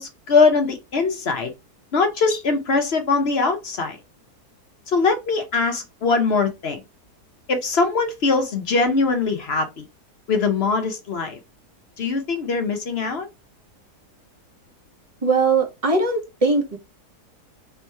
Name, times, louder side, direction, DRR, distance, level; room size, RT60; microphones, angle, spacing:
voice 1, 0.0-1.5 1.9-4.0 4.9-6.8 7.5-9.8 10.3-11.4 12.0-13.3, left 4 dB, 50° left, 0.9 m, -21 dB
voice 2, 15.2-16.8, right 3 dB, 25° right, 1.0 m, -20 dB
3.5 x 2.9 x 4.5 m
omnidirectional pair, 1.7 m